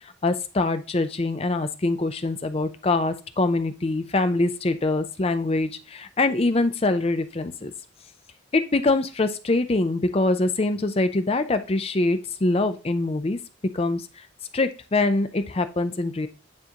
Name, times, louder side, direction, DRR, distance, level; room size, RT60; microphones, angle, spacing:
voice 1, 0.2-7.7 8.5-13.4 13.7-14.0 14.5-16.3, left 2 dB, 30° left, 10 dB, 0.5 m, -24 dB
9.7 x 3.8 x 2.9 m, 0.33 s
head